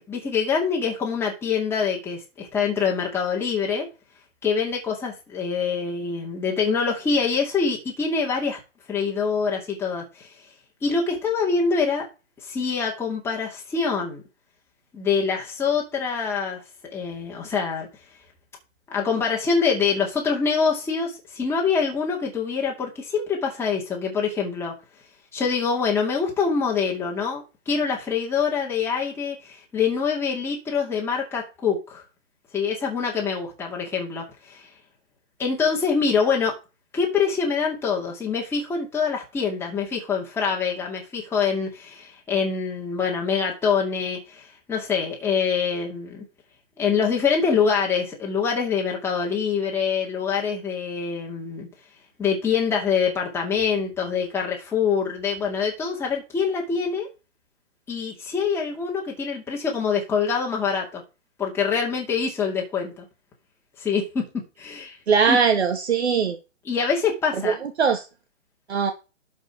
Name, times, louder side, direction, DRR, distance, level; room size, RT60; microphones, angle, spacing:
voice 1, 0.1-3.9 4.4-8.6 8.9-10.3 10.8-12.1 12.5-14.2 14.9-16.6 16.9-17.9 18.9-24.7 25.3-32.0 32.5-34.7 35.4-36.6 36.9-46.2 46.8-51.7 52.2-57.1 57.9-61.0 61.4-63.0 63.8-64.3 64.6-65.0 65.3-65.4 66.7-67.6, left 5 dB, 5° left, 2.2 m, -25 dB
voice 2, 65.1-66.4 67.4-68.1 68.7-68.9, right 6 dB, 60° right, 2.0 m, -21 dB
12.0 x 5.4 x 4.9 m
hypercardioid pair, 150°, 37 cm